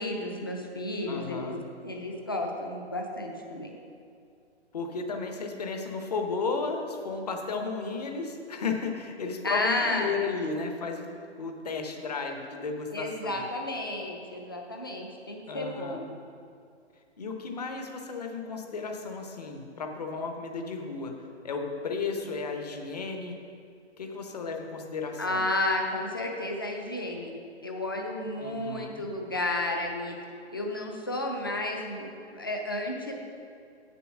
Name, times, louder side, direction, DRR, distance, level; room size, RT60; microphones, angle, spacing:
voice 1, 0.0-1.5 1.8-3.7 9.4-10.1 12.9-16.1 25.2-27.3 27.6-30.2 30.5-33.1, left 1 dB, 20° left, 1 dB, 0.5 m, -32 dB
voice 2, 1.1-1.6 4.7-11.1 11.4-13.4 15.5-16.1 17.2-23.4 24.0-25.4 28.4-29.0, left 4 dB, 35° left, 4 dB, 0.9 m, -34 dB
8.2 x 6.9 x 6.1 m, 2.4 s
hypercardioid pair, 175°, 34 cm